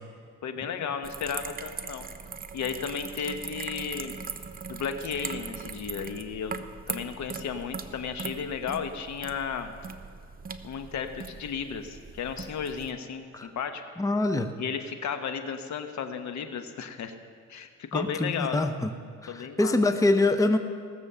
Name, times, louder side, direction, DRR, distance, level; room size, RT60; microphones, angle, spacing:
voice 1, 0.4-2.1 2.5-4.2 4.7-9.7 10.6-13.8 14.6-17.2 17.5-18.6 19.3-19.7, left 6 dB, 70° left, 7 dB, 1.1 m, -34 dB
sound 1, 1.0-12.9, right 5 dB, 30° right, 0.7 m, -40 dB
voice 2, 14.0-14.5 17.9-18.9 19.2-20.6, left 2 dB, 10° left, 8 dB, 0.7 m, -24 dB
18.0 x 7.1 x 6.8 m, 2.2 s
cardioid pair, 90°, 30 cm